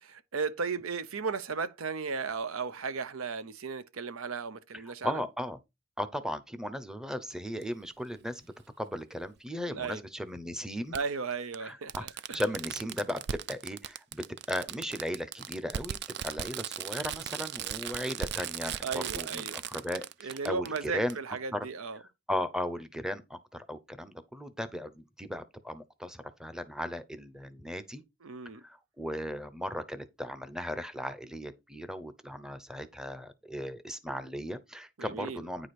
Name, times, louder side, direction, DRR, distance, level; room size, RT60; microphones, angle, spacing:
voice 1, 0.0-5.2 9.7-10.0 10.9-12.4 18.8-19.6 20.2-22.0 28.2-28.6 35.0-35.4, right 5 dB, 80° right, 0.7 m, -35 dB
voice 2, 4.7-5.6 6.0-8.4 8.8-10.9 11.6-12.1 12.3-16.0 16.2-21.2 21.5-21.7 22.3-28.0 28.6-35.7, equal, 5° right, 0.7 m, -36 dB
Fireworks, 7.6-7.7 9.2-9.3 10.9-11.0 11.5-11.6 11.9-20.8 21.1-21.2, right 9 dB, 55° right, 0.4 m, -37 dB
9.6 x 4.9 x 4.2 m
head